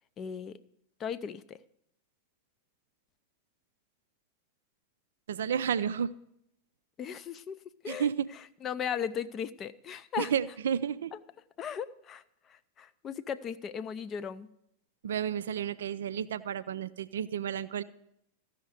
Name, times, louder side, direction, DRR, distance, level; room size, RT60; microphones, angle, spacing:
voice 1, 0.2-0.6 1.0-1.6 7.0-10.3 11.1-11.2 11.6-14.5, left 7 dB, 30° left, 14 dB, 0.5 m, -37 dB
voice 2, 5.3-6.1 7.9-8.3 10.2-11.1 15.0-17.8, right 8 dB, 60° right, 13 dB, 0.3 m, -31 dB
14.5 x 5.8 x 6.4 m, 0.77 s
figure-of-eight pair, 90°, 0 cm